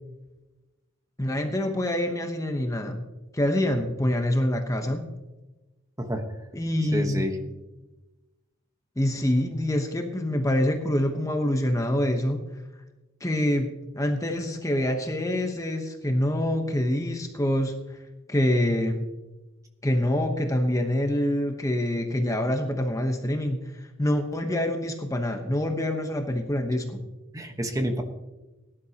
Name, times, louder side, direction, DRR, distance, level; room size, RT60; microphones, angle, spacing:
voice 1, 1.2-3.0 3.3-5.1 6.5-7.3 9.0-12.4 13.2-17.8 18.3-19.0 19.8-27.0, left 1 dB, 15° left, 4 dB, 1.0 m, -26 dB
voice 2, 6.0-6.5 6.9-7.4 27.3-28.0, equal, 15° right, 5 dB, 1.1 m, -29 dB
18.0 x 11.0 x 2.9 m, 1.1 s
head